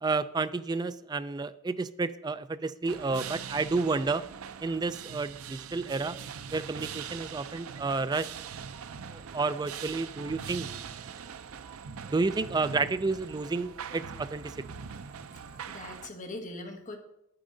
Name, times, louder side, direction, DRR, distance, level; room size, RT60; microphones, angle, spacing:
voice 1, 0.0-4.2 4.6-6.2 6.5-8.3 9.1-10.7 12.0-14.6, right 3 dB, 20° right, 13 dB, 0.3 m, -30 dB
sound 1, 2.9-16.1, right 7 dB, 90° right, 0.5 m, -42 dB
voice 2, 15.5-17.0, left 2 dB, 35° left, 3 dB, 1.3 m, -41 dB
10.0 x 8.7 x 3.8 m, 0.80 s
head